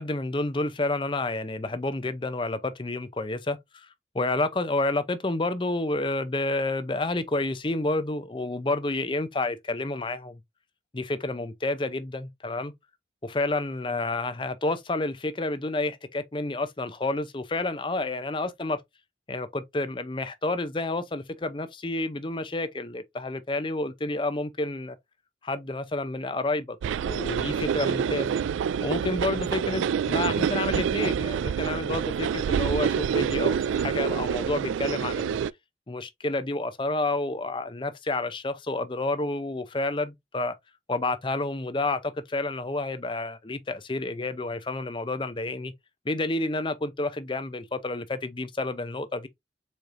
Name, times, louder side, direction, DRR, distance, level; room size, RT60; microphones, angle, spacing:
voice 1, 0.0-3.9 4.1-10.4 10.9-12.7 13.2-18.8 19.3-25.0 25.4-26.8 27.0-28.4 28.8-35.4 35.9-40.6 40.9-45.7 46.1-49.3, left 2 dB, 25° left, 0.6 m, -29 dB
sound 1, 26.8-35.5, right 7 dB, 85° right, 0.3 m, -27 dB
4.8 x 4.3 x 2.6 m
head